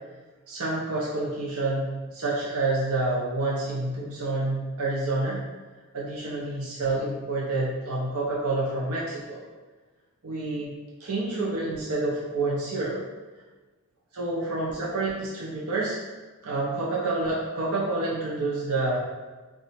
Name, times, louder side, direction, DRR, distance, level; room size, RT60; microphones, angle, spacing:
voice 1, 0.5-5.4 5.9-9.4 10.2-13.0 14.1-16.0 16.4-19.0, right 2 dB, 80° right, -5 dB, 0.6 m, -28 dB
2.8 x 2.2 x 4.1 m, 1.3 s
head